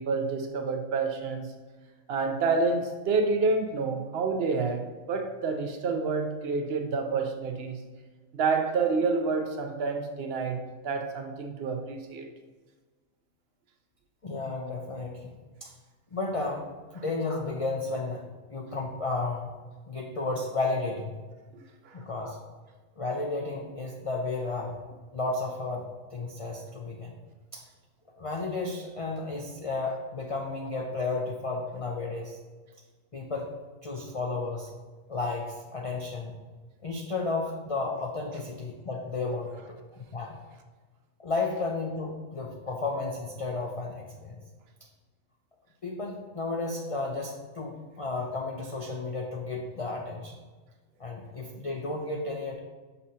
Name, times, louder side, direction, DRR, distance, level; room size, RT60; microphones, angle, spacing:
voice 1, 0.0-1.5 2.1-7.8 8.3-12.3 21.5-22.0, right 4 dB, 60° right, 5 dB, 0.8 m, -28 dB
voice 2, 14.2-15.3 15.6-15.7 16.1-16.7 16.9-18.2 18.5-19.5 19.9-21.2 21.9-22.4 23.0-24.8 25.1-27.2 27.5-27.6 28.2-32.4 33.1-33.5 33.8-34.7 35.1-36.3 36.8-39.8 40.1-40.4 41.2-44.4 45.8-50.3 51.0-52.6, left 3 dB, 45° left, -1 dB, 0.4 m, -33 dB
6.2 x 5.4 x 2.8 m, 1.4 s
omnidirectional pair, 1.4 m